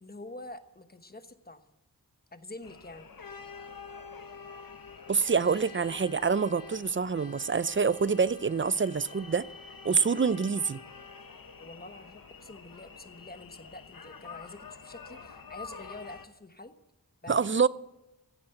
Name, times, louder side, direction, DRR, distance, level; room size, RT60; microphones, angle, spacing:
voice 1, 0.0-1.6 2.3-3.1 11.6-16.7 17.2-17.7, left 2 dB, 25° left, 1.1 m, -46 dB
sound 1, 2.6-16.3, left 5 dB, 65° left, 1.2 m, -47 dB
voice 2, 5.1-9.4 9.8-10.8 17.3-17.7, right 5 dB, 35° right, 0.4 m, -26 dB
15.5 x 8.4 x 7.8 m
wide cardioid pair, 75°, 37 cm